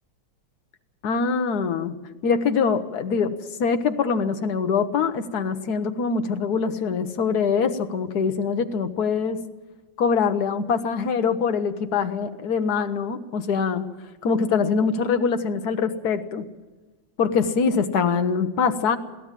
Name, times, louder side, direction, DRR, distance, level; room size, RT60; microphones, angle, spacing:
voice 1, 1.0-2.0 2.2-9.4 10.0-13.9 14.2-16.5 17.2-19.0, left 5 dB, 60° left, 8 dB, 1.5 m, -23 dB
22.0 x 16.5 x 7.5 m, 1.2 s
omnidirectional pair, 2.1 m